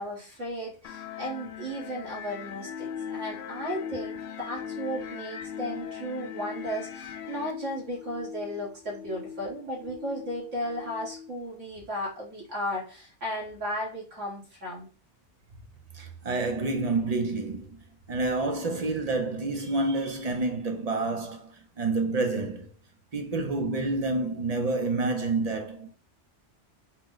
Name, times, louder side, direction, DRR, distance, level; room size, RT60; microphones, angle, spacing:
voice 1, 0.0-14.9, equal, 90° right, 1.9 m, -35 dB
sound 1, 0.8-7.5, left 9 dB, 85° left, 0.9 m, -42 dB
sound 2, 2.6-11.3, left 7 dB, 55° left, 0.7 m, -41 dB
voice 2, 15.9-17.8 18.1-22.7 23.1-25.9, right 3 dB, 45° right, 0.5 m, -28 dB
4.2 x 2.1 x 3.8 m
omnidirectional pair, 1.2 m